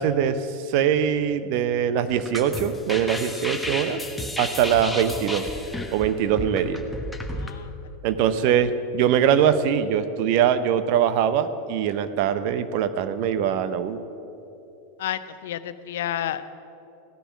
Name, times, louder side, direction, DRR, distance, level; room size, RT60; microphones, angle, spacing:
voice 1, 0.0-4.0 4.4-5.5 5.9-6.8 8.0-14.0, right 8 dB, 55° right, 12 dB, 0.8 m, -22 dB
sound 1, 2.1-7.5, left 1 dB, 5° left, 1.4 m, -33 dB
voice 2, 15.0-16.5, left 11 dB, 70° left, 13 dB, 0.6 m, -30 dB
15.5 x 10.0 x 6.1 m, 3.0 s
hypercardioid pair, 95°, 0 cm